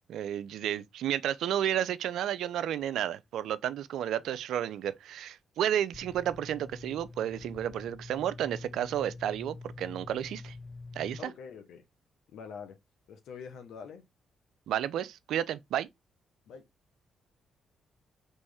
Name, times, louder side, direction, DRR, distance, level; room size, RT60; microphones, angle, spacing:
voice 1, 0.1-10.6 10.9-11.3 14.7-15.9, right 10 dB, 75° right, 0.4 m, -32 dB
sound 1, 5.9-11.2, left 3 dB, 30° left, 0.4 m, -46 dB
voice 2, 11.2-11.8 12.3-12.8 13.1-14.0 16.5-16.6, left 6 dB, 75° left, 0.8 m, -45 dB
4.2 x 3.1 x 3.4 m
supercardioid pair, 55°, 0 cm